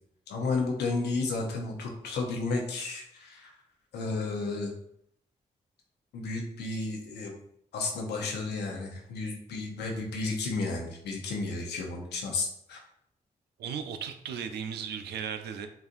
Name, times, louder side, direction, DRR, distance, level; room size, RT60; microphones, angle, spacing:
voice 1, 0.3-3.5 3.9-4.7 6.1-7.4 7.7-12.8, left 3 dB, 85° left, 1 dB, 0.8 m, -32 dB
voice 2, 13.6-15.7, right 7 dB, 80° right, 8 dB, 0.4 m, -36 dB
5.5 x 2.5 x 2.5 m, 0.73 s
supercardioid pair, 40°, 17 cm